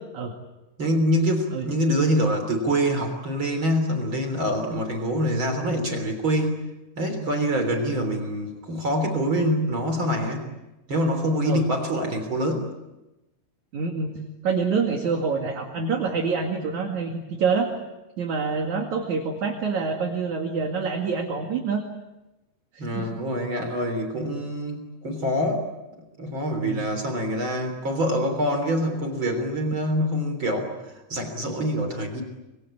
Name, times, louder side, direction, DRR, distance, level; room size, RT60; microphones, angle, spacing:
voice 1, 0.8-6.6 7.0-10.4 10.9-12.7 22.8-25.7 26.2-32.2, equal, 30° right, 5 dB, 3.5 m, -25 dB
voice 2, 13.7-14.2 14.4-17.7 18.2-21.8 22.7-23.2 26.6-26.9, right 5 dB, 50° right, 2 dB, 2.8 m, -26 dB
26.5 x 22.5 x 8.7 m, 1.0 s
omnidirectional pair, 5.6 m